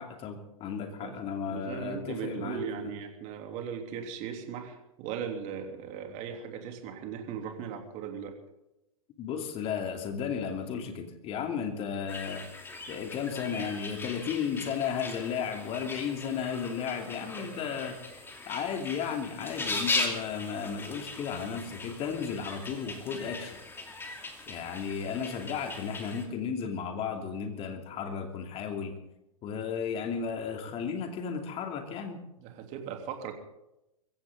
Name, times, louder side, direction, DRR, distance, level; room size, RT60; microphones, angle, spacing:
voice 1, 0.0-2.9 9.2-12.4 12.9-18.0 18.5-23.6 24.5-28.9 29.4-32.2, left 7 dB, 30° left, 5 dB, 2.8 m, -34 dB
voice 2, 1.5-8.3 17.2-17.7 32.4-33.3, right 7 dB, 40° right, 3 dB, 3.3 m, -38 dB
sound 1, 12.1-26.3, left 3 dB, 10° left, 2.6 m, -39 dB
23.0 x 15.5 x 3.9 m, 0.91 s
figure-of-eight pair, 110°, 19 cm